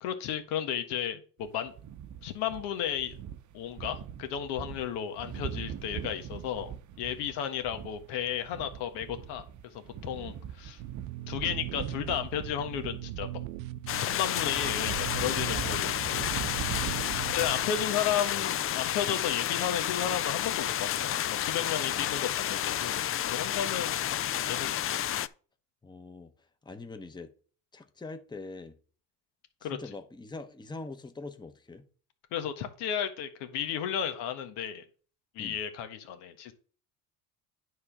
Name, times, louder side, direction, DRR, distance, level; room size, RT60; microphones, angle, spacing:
voice 1, 0.0-1.7 2.2-3.2 3.5-10.8 11.3-13.4 14.0-16.2 17.3-24.0 24.3-24.9 29.6-29.8 32.3-34.8 35.3-36.5, left 9 dB, 80° left, 1.6 m, -34 dB
sound 1, 1.4-17.9, right 9 dB, 45° right, 0.8 m, -42 dB
sound 2, 10.8-17.9, right 14 dB, 90° right, 0.6 m, -40 dB
sound 3, 13.9-25.3, left 11 dB, 35° left, 0.4 m, -31 dB
voice 2, 17.1-17.7 21.9-22.0 25.8-26.3 26.6-27.3 27.7-28.8 29.6-31.8 35.4-35.6, left 3 dB, 10° left, 1.0 m, -43 dB
9.5 x 3.6 x 6.0 m
supercardioid pair, 85°, 40 cm